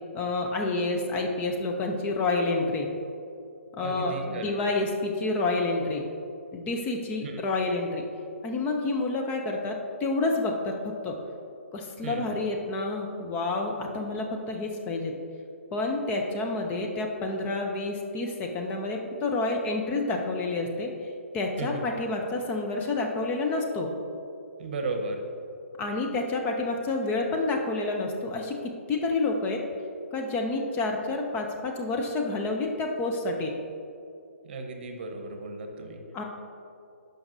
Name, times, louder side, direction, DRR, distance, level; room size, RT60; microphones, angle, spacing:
voice 1, 0.1-2.9 3.8-6.1 6.5-8.0 8.4-11.1 11.7-15.1 15.7-20.9 21.3-23.9 25.8-28.6 28.9-29.6 30.1-33.5 36.1-36.2, left 2 dB, 20° left, 2 dB, 0.6 m, -29 dB
voice 2, 3.8-4.6 7.2-7.4 12.0-12.3 21.6-21.8 24.6-25.2 34.4-36.0, right 3 dB, 50° right, 4 dB, 0.9 m, -35 dB
11.5 x 5.2 x 2.6 m, 2.6 s
figure-of-eight pair, 135°, 8 cm